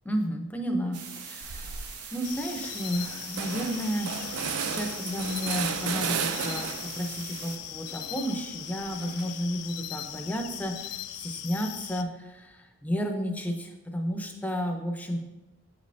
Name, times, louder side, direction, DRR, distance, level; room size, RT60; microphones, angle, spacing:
voice 1, 0.0-1.8 2.1-15.2, equal, 5° left, 3 dB, 0.6 m, -32 dB
sound 1, 0.9-7.6, right 5 dB, 85° right, 0.8 m, -42 dB
sound 2, 1.4-1.9 2.3-2.4 2.6-7.0 7.4-9.5, right 7 dB, 70° right, 0.4 m, -35 dB
sound 3, 2.2-12.0, left 13 dB, 80° left, 0.3 m, -40 dB
7.0 x 5.3 x 2.6 m, 1.1 s
head